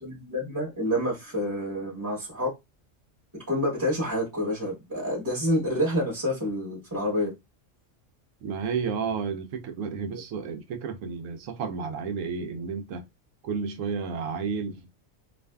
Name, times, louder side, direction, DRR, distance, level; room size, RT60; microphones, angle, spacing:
voice 1, 0.0-2.5 3.5-7.3 10.1-10.2, equal, 20° right, 0.9 m, -28 dB
voice 2, 8.4-13.0 13.4-14.9, right 5 dB, 90° right, 1.0 m, -32 dB
2.5 x 2.5 x 2.2 m
omnidirectional pair, 1.3 m